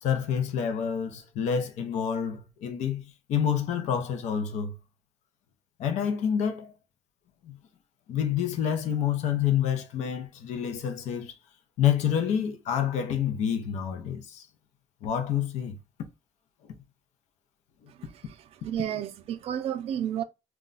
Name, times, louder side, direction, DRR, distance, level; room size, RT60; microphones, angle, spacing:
voice 1, 0.0-4.8 5.8-6.7 7.4-7.6 8.1-11.3 11.8-14.5 15.0-15.8 16.7-16.8 17.8-17.9, left 8 dB, 90° left, 0.6 m, -28 dB
voice 2, 17.9-18.4 18.6-20.2, right 10 dB, 60° right, 0.4 m, -32 dB
2.3 x 2.2 x 3.8 m
cardioid pair, 165°, 12 cm